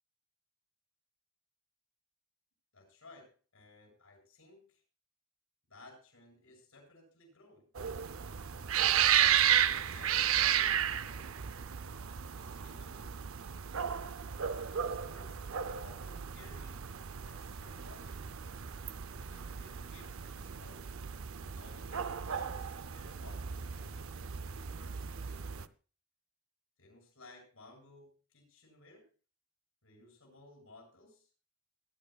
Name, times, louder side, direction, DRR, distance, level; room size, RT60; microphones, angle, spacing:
voice 1, 2.7-4.8 5.7-7.7 9.3-11.3 12.3-13.2 14.1-15.5 15.8-16.9 17.2-18.3 19.1-20.9 21.5-25.7 26.8-29.1 29.8-31.3, left 2 dB, 80° left, -1 dB, 8.0 m, -58 dB
sound 1, 7.7-25.6, right 9 dB, 70° right, 0.6 m, -33 dB
22.0 x 11.5 x 2.3 m, 0.35 s
head